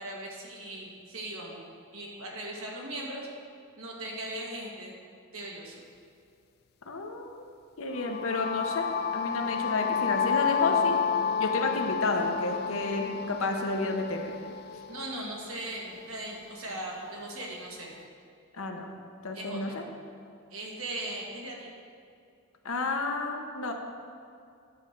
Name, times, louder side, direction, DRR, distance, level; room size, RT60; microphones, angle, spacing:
voice 1, 0.0-1.6 1.9-3.3 3.8-5.0 5.3-5.8 14.9-17.9 19.3-19.8 20.5-21.7, right 1 dB, 70° right, -2 dB, 1.7 m, -39 dB
voice 2, 6.9-7.5 7.8-11.0 11.4-14.3 18.5-18.9 19.2-19.8 22.6-23.7, left 2 dB, 65° left, 3 dB, 0.9 m, -31 dB
sound 1, 7.9-15.9, left 7 dB, 45° left, 0.3 m, -30 dB
10.5 x 4.4 x 6.6 m, 2.4 s
head